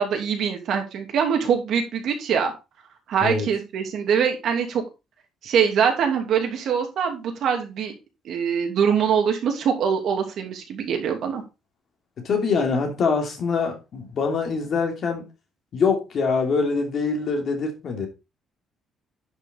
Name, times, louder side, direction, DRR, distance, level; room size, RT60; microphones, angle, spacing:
voice 1, 0.0-2.5 3.1-4.8 5.4-7.9 8.2-11.4, right 7 dB, 55° right, 2.6 m, -23 dB
voice 2, 12.2-15.3 15.7-18.1, left 4 dB, 40° left, 3.0 m, -24 dB
11.0 x 6.2 x 3.9 m
cardioid pair, 175°, 0 cm